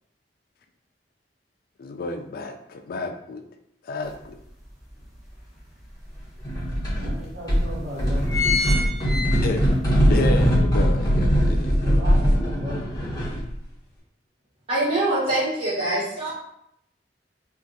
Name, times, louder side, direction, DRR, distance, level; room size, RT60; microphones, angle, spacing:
voice 1, 1.8-3.4 3.8-4.4 9.3-9.6 10.1-11.7, left 3 dB, 55° left, 5 dB, 0.4 m, -30 dB
sound 1, 4.1-4.2 4.6-5.8 6.4-6.5 6.8-6.9 7.6-7.8 8.0-9.9 10.3-10.4, left 5 dB, ahead, 0.9 m, -27 dB
sound 2, 6.4-7.1 7.5-13.5, equal, 25° left, 1.1 m, -21 dB
voice 2, 6.9-8.3 11.4-13.1, equal, 60° right, -11 dB, 0.9 m, -36 dB
voice 3, 14.7-16.3, right 1 dB, 35° right, -8 dB, 1.4 m, -24 dB
2.5 x 2.4 x 4.0 m, 0.76 s
head